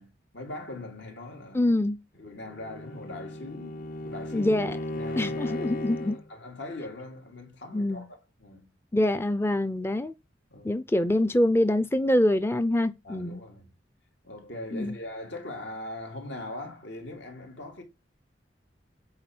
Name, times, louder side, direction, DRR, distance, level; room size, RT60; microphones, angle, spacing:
voice 1, 0.0-1.8 2.1-4.5 4.9-8.7 10.5-11.0 13.0-13.7 14.2-17.8, left 2 dB, 80° left, 2.8 m, -41 dB
voice 2, 1.5-2.0 4.3-4.8 5.2-6.2 7.7-8.0 8.9-10.1 10.6-13.4 14.7-15.0, left 1 dB, 15° left, 0.5 m, -25 dB
Bowed string instrument, 2.4-6.3, left 1 dB, 50° left, 0.8 m, -36 dB
8.7 x 4.4 x 6.0 m
head